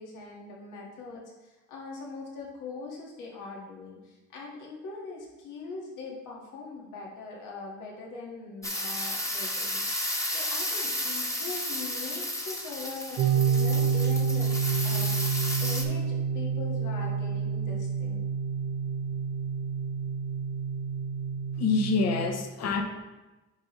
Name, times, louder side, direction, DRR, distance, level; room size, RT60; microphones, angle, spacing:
voice 1, 0.0-14.5 14.8-15.3 15.6-18.3, left 4 dB, 85° left, -3 dB, 1.8 m, -41 dB
sound 1, 8.6-15.8, left 1 dB, 10° left, 1.1 m, -32 dB
sound 2, 13.2-22.3, right 6 dB, 60° right, 0.9 m, -28 dB
voice 2, 21.6-22.8, left 4 dB, 60° left, 5 dB, 0.9 m, -26 dB
9.4 x 5.2 x 3.1 m, 1.1 s
cardioid pair, 90°, 30 cm